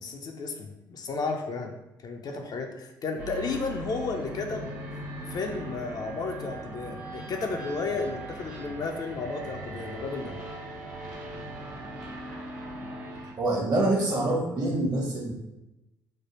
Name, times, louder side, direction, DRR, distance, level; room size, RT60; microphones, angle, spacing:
voice 1, 0.0-1.7 2.0-4.8 5.3-10.3, left 4 dB, 45° left, 4 dB, 0.4 m, -33 dB
sound 1, 3.2-13.3, right 2 dB, 80° right, 0.8 m, -39 dB
voice 2, 13.4-15.3, right 2 dB, 45° right, 0 dB, 0.9 m, -25 dB
3.2 x 2.1 x 3.0 m, 0.95 s
hypercardioid pair, 50°, 9 cm